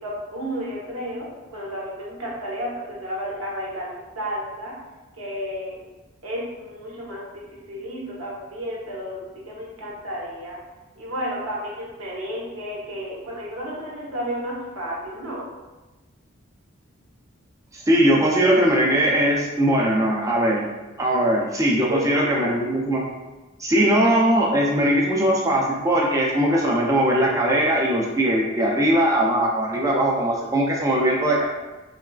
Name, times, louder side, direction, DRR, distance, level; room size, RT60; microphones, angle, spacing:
voice 1, 0.0-4.7 5.2-5.8 6.2-10.6 11.0-15.4 21.9-22.7, equal, 80° right, -4 dB, 0.8 m, -32 dB
voice 2, 17.7-20.6 21.0-23.1 23.6-31.4, right 1 dB, 15° right, -3 dB, 0.3 m, -20 dB
3.3 x 2.3 x 2.3 m, 1.1 s
head